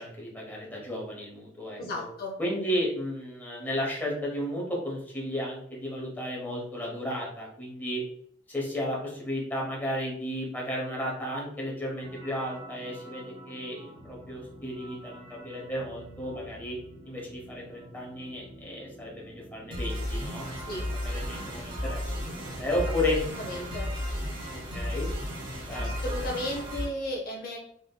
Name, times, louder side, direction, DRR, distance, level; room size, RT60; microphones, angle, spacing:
voice 1, 0.0-2.0 2.4-8.0 8.5-16.8 17.1-20.6 21.0-23.2 24.7-25.1 25.7-25.9, left 1 dB, 10° left, -3 dB, 0.9 m, -33 dB
voice 2, 1.8-2.4 20.7-20.9 23.4-23.9 25.7-27.6, left 1 dB, 50° left, -1 dB, 0.6 m, -34 dB
sound 1, 12.0-26.9, equal, 30° right, 1.2 m, -36 dB
3.6 x 2.9 x 2.2 m, 0.67 s
head